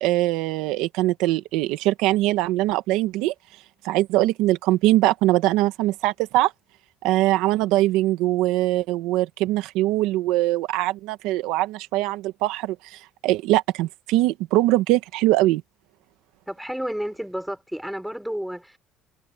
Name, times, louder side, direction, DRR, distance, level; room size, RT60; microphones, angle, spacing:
voice 1, 0.0-3.3 3.8-6.5 7.0-15.6, right 16 dB, 85° right, 1.6 m, -22 dB
voice 2, 16.5-18.8, equal, ahead, 5.1 m, -31 dB
cardioid pair, 135°, 0 cm